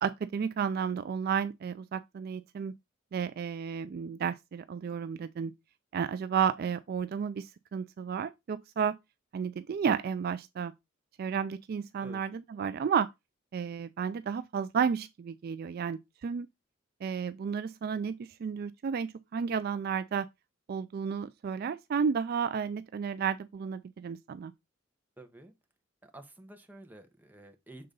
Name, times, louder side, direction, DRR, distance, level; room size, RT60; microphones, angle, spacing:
voice 1, 0.0-2.7 3.1-5.5 5.9-9.0 9.3-10.7 11.2-12.3 12.6-13.1 13.5-16.5 17.0-20.3 20.7-24.5, right 6 dB, 50° right, 0.3 m, -32 dB
voice 2, 25.2-25.5 26.0-27.9, right 1 dB, 10° right, 0.9 m, -50 dB
6.6 x 3.9 x 3.8 m
head